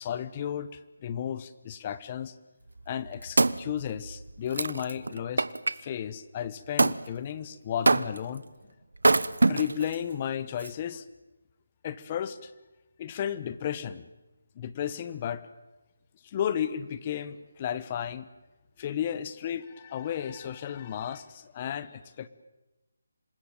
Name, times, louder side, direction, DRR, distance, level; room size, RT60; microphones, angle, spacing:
voice 1, 0.0-2.3 2.9-5.4 5.8-8.4 9.4-11.0 11.8-12.5 13.0-14.1 14.5-15.4 16.2-18.3 18.8-22.3, left 9 dB, 25° left, 15 dB, 1.1 m, -33 dB
Wood, 2.8-5.8 6.8-7.0 7.8-8.4 8.9-9.9 10.6-10.7, right 3 dB, 90° right, 1.2 m, -25 dB
27.0 x 22.5 x 9.1 m, 1.0 s
figure-of-eight pair, 170°, 0 cm